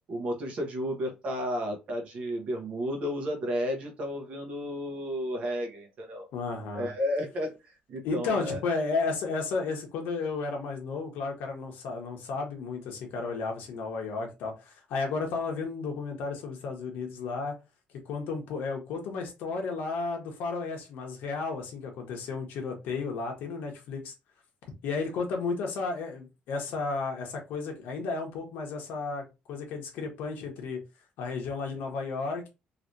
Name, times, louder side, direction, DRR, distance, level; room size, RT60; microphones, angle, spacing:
voice 1, 0.1-6.3 6.7-7.5 7.9-8.6, equal, 40° right, 1.0 m, -32 dB
voice 2, 6.3-6.9 8.0-17.6 18.1-24.1 24.8-30.8 31.2-32.5, left 4 dB, 75° left, 1.1 m, -33 dB
3.2 x 2.9 x 2.7 m
cardioid pair, 175°, 3 cm